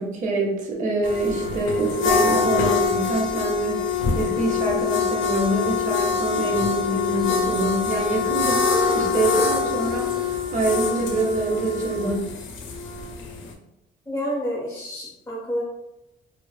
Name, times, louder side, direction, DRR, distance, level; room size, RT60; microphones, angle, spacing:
voice 1, 0.0-8.7 8.9-12.3, right 2 dB, 40° right, -1 dB, 0.6 m, -25 dB
sound 1, 1.0-13.5, left 5 dB, 80° left, 0.5 m, -24 dB
voice 2, 14.1-15.6, equal, 15° left, -5 dB, 0.6 m, -29 dB
2.4 x 2.3 x 2.2 m, 0.86 s
cardioid pair, 90°, 20 cm